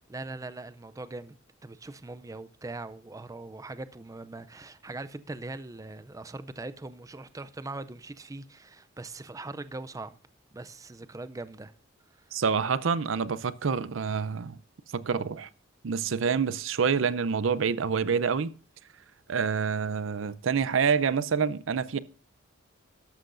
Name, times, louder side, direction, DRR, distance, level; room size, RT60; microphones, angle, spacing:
voice 1, 0.1-1.4 1.6-10.2 10.5-11.7 12.1-12.4, right 2 dB, 15° right, 0.4 m, -41 dB
voice 2, 12.3-14.6 14.9-15.5 15.8-18.5 19.3-22.0, right 6 dB, 70° right, 0.5 m, -27 dB
13.0 x 11.5 x 2.6 m
head